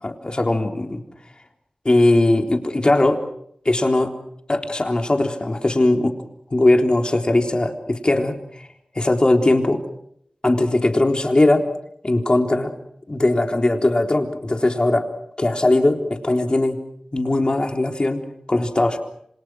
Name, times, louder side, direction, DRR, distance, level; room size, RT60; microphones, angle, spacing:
voice 1, 0.0-1.0 1.9-3.2 3.7-4.1 4.5-6.2 6.5-8.7 9.0-9.8 10.4-11.7 12.0-12.7 13.1-15.1 15.4-16.8 17.1-19.0, left 2 dB, 40° left, 4 dB, 3.7 m, -19 dB
27.5 x 26.5 x 6.2 m, 0.72 s
wide cardioid pair, 55°, 2 cm